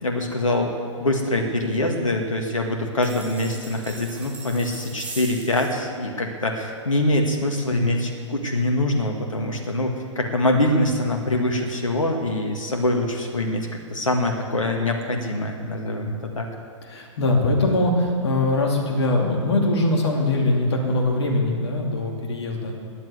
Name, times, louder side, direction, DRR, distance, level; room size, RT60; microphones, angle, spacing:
voice 1, 0.0-16.5, left 1 dB, 80° left, 2 dB, 1.8 m, -24 dB
sound 1, 3.0-5.7, right 3 dB, 10° right, 3.3 m, -40 dB
voice 2, 7.7-8.1 16.9-22.7, left 2 dB, 55° left, 0 dB, 2.8 m, -22 dB
13.5 x 10.0 x 8.0 m, 2.2 s
figure-of-eight pair, 120°, 17 cm